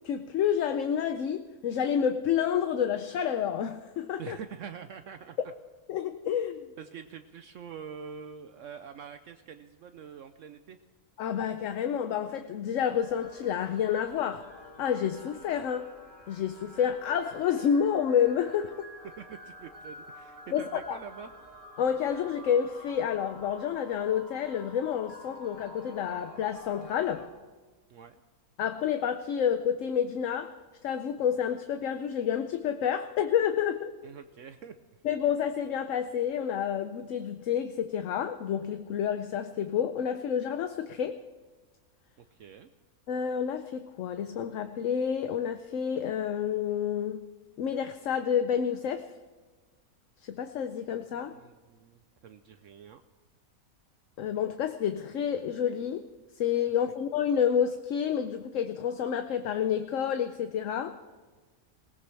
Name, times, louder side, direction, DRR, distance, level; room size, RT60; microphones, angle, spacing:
voice 1, 0.0-4.4 5.9-6.7 11.2-14.5 14.8-15.9 16.3-18.7 20.5-21.0 21.8-27.3 28.6-34.0 35.0-41.2 43.1-47.2 47.6-49.1 50.2-51.4 54.2-56.1 56.3-61.2, left 8 dB, 65° left, 1.0 m, -29 dB
voice 2, 4.2-5.4 6.8-10.8 19.2-21.3 27.9-28.2 34.0-35.0 42.2-42.7 51.3-53.0, right 7 dB, 65° right, 1.0 m, -45 dB
sound 1, 13.0-27.3, equal, 35° left, 3.5 m, -49 dB
20.5 x 17.5 x 3.3 m
omnidirectional pair, 1.5 m